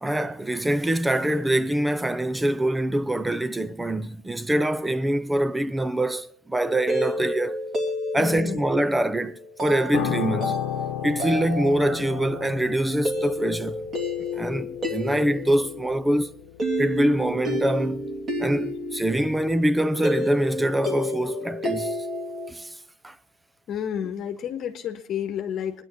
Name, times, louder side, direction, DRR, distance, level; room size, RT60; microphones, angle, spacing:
voice 1, 0.0-7.6 8.1-10.6 11.0-13.8 14.3-16.3 16.8-18.1 18.4-22.1 22.5-22.8 23.0-23.2, right 1 dB, 10° right, 0.6 m, -24 dB
sound 1, 6.6-22.5, left 1 dB, 30° right, 2.9 m, -31 dB
voice 2, 8.1-8.6 23.7-25.8, left 9 dB, 50° left, 1.4 m, -30 dB
Piano, 9.9-19.3 19.6-19.8, left 15 dB, 75° left, 0.7 m, -35 dB
21.5 x 10.0 x 4.3 m
supercardioid pair, 110°, 0 cm